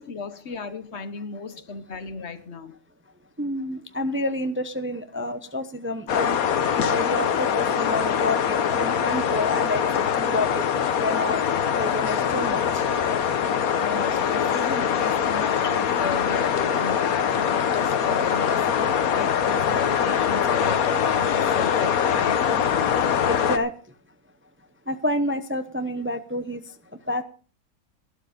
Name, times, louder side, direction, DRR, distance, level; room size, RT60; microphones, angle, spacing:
voice 1, 0.0-2.7 13.8-18.7 19.0-22.5, left 4 dB, 50° left, 1.3 m, -34 dB
voice 2, 3.4-6.4 6.8-9.8 10.1-10.6 11.0-11.4 11.7-12.8 23.3-23.7 24.9-26.6 27.1-27.2, left 1 dB, 15° right, 0.5 m, -28 dB
sound 1, 6.1-23.6, left 8 dB, 75° left, 1.4 m, -23 dB
12.0 x 12.0 x 5.2 m
omnidirectional pair, 1.6 m